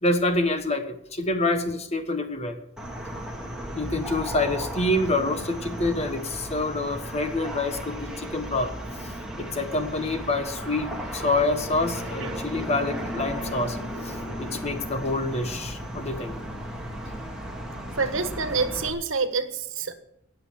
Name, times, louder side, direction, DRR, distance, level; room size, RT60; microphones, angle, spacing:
voice 1, 0.0-2.6 3.8-8.7 9.4-13.8 14.0-16.3, left 2 dB, 30° left, 8 dB, 1.3 m, -27 dB
sound 1, 2.8-18.9, equal, 5° right, 2.0 m, -35 dB
voice 2, 18.0-19.9, right 4 dB, 75° right, 9 dB, 1.4 m, -27 dB
18.5 x 7.0 x 7.3 m, 0.74 s
head